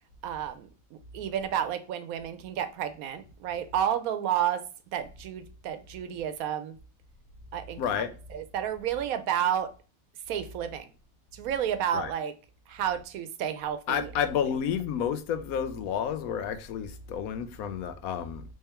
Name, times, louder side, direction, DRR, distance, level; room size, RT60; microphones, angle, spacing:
voice 1, 0.2-0.7 1.1-4.6 4.9-6.8 7.5-8.0 8.3-9.7 10.3-10.9 11.3-12.3 12.7-14.1, right 9 dB, 80° right, 1.1 m, -31 dB
voice 2, 7.8-8.1 11.9-12.1 13.9-18.4, left 8 dB, 85° left, 1.1 m, -30 dB
3.5 x 3.4 x 4.2 m
omnidirectional pair, 1.5 m